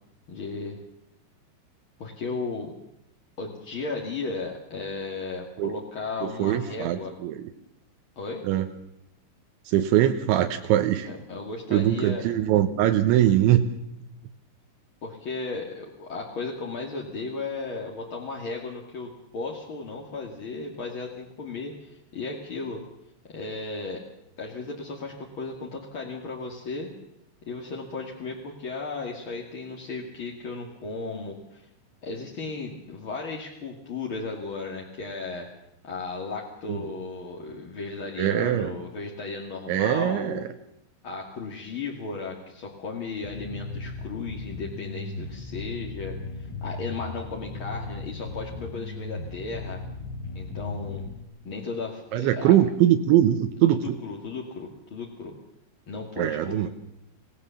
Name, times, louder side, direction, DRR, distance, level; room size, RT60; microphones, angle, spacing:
voice 1, 0.3-0.8 2.0-2.7 3.4-7.1 8.2-8.5 11.1-12.3 15.0-22.8 23.3-24.0 24.4-26.9 27.4-31.6 32.0-35.5 35.8-40.5 41.0-49.8 50.3-51.0 51.4-52.5 53.7-55.4 55.9-56.7, left 3 dB, 40° left, 0 dB, 2.0 m, -35 dB
voice 2, 6.2-7.4 8.4-8.7 9.7-11.1 11.7-13.6 36.7-36.8 38.2-38.7 39.7-40.4 52.1-54.0 56.2-56.7, right 12 dB, 85° right, 6 dB, 3.4 m, -22 dB
sound 1, 43.2-51.2, left 3 dB, 70° left, 4.8 m, -37 dB
27.0 x 17.5 x 7.1 m, 0.80 s
omnidirectional pair, 5.2 m